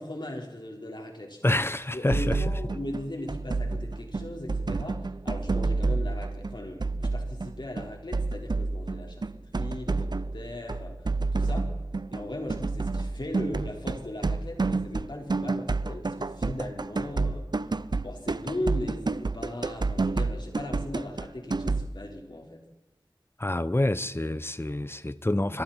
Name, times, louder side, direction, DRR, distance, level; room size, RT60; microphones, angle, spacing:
voice 1, 0.0-1.6 1.9-11.7 12.1-17.8 18.0-22.7, left 1 dB, 60° left, 4.7 m, -38 dB
voice 2, 1.4-2.4 23.4-25.6, left 1 dB, 30° left, 0.8 m, -27 dB
sound 1, 2.1-21.9, right 3 dB, 55° right, 0.7 m, -29 dB
26.5 x 24.5 x 4.5 m
wide cardioid pair, 55°, 9 cm